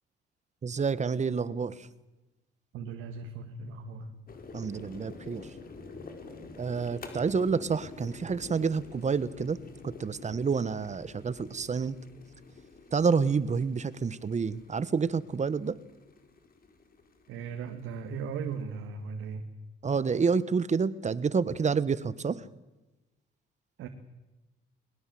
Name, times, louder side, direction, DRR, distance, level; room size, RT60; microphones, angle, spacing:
voice 1, 0.6-1.7 4.5-5.5 6.6-9.6 9.8-11.9 12.9-15.7 19.8-22.4, right 5 dB, 35° right, 17 dB, 1.3 m, -28 dB
voice 2, 2.7-4.1 17.3-19.5 23.8-23.9, right 5 dB, 85° right, 5 dB, 2.1 m, -37 dB
sound 1, 4.3-18.8, left 3 dB, 45° left, 4.7 m, -48 dB
21.5 x 21.5 x 7.8 m, 1.0 s
cardioid pair, 90°, 20 cm